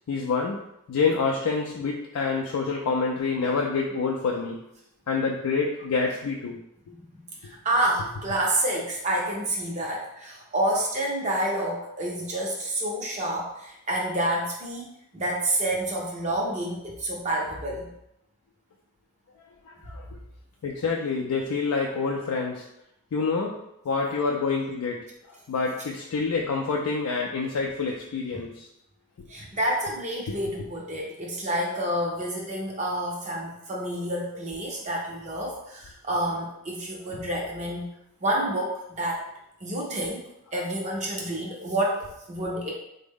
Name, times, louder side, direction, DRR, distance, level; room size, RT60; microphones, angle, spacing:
voice 1, 0.1-4.6 5.1-6.6 19.7-20.1 20.6-22.6 23.1-23.6 23.8-25.0 25.5-28.7 30.3-30.4, left 4 dB, 90° left, 0 dB, 0.4 m, -27 dB
voice 2, 7.4-17.9 28.3-28.4 29.3-37.9 38.2-39.2 39.6-40.2 40.5-42.7, right 1 dB, 30° right, -2 dB, 0.5 m, -29 dB
3.5 x 2.1 x 3.5 m, 0.82 s
head